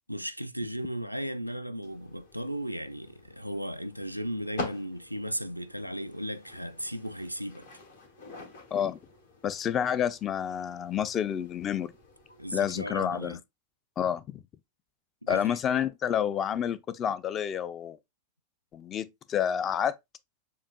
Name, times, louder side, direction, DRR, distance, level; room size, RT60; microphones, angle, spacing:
voice 1, 0.1-7.7 12.4-13.4 15.2-15.6, equal, 90° right, 0.3 m, -36 dB
sound 1, 1.8-13.3, left 2 dB, 60° left, 1.3 m, -47 dB
voice 2, 9.4-11.9 12.5-13.4 14.0-14.4 15.3-18.0 18.7-20.0, left 9 dB, 30° left, 0.4 m, -29 dB
7.1 x 2.4 x 2.2 m
figure-of-eight pair, 90°, 0 cm